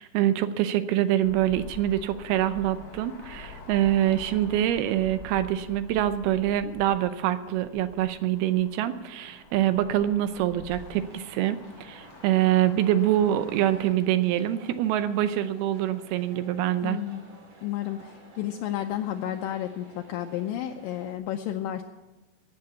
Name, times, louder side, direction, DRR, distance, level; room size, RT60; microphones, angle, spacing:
voice 1, 0.0-17.0, right 12 dB, 80° right, 11 dB, 2.6 m, -25 dB
sound 1, 1.2-13.9, left 4 dB, 65° left, 0.9 m, -47 dB
sound 2, 10.7-21.2, right 2 dB, 50° right, 3.8 m, -53 dB
voice 2, 16.8-17.2 17.6-21.8, left 11 dB, 80° left, 5 dB, 2.0 m, -32 dB
16.0 x 6.8 x 8.2 m, 1.1 s
omnidirectional pair, 4.6 m